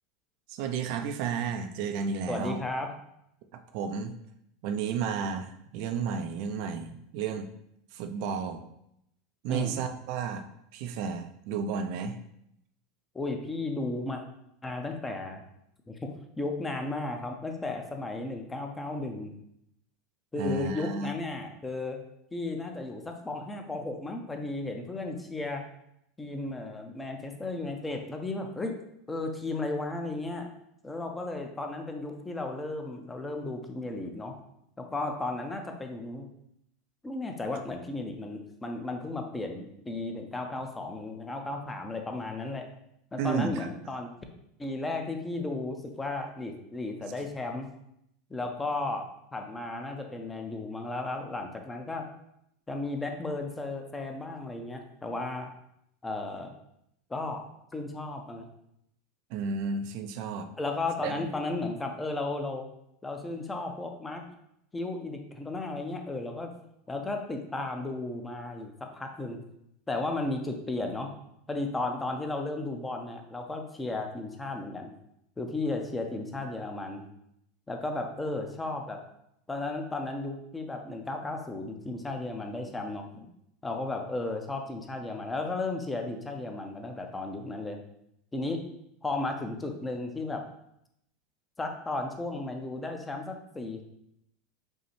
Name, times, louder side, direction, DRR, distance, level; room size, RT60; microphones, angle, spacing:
voice 1, 0.5-2.6 3.5-4.1 4.6-7.5 7.9-8.6 9.4-10.5 10.7-12.2 20.3-21.1 43.2-43.7 59.3-60.5 61.0-61.1, right 6 dB, 65° right, 7 dB, 0.3 m, -32 dB
voice 2, 2.3-3.0 9.5-9.8 13.1-14.2 14.6-15.4 15.9-16.0 16.4-19.3 20.3-22.0 22.3-25.6 26.2-28.7 29.1-30.5 30.8-34.3 34.8-36.3 37.0-42.7 43.1-44.1 44.6-47.7 48.3-49.1 49.3-52.1 52.7-55.5 56.0-56.5 57.1-57.5 57.7-58.5 60.6-62.7 63.0-64.2 64.7-66.5 66.9-69.4 69.9-71.1 71.5-74.9 75.4-77.0 77.7-79.0 79.5-83.3 83.6-87.8 88.3-88.6 89.0-90.4 91.6-93.8, left 2 dB, 15° left, 4 dB, 0.5 m, -34 dB
5.3 x 2.1 x 3.0 m, 0.77 s
supercardioid pair, 115°, 0 cm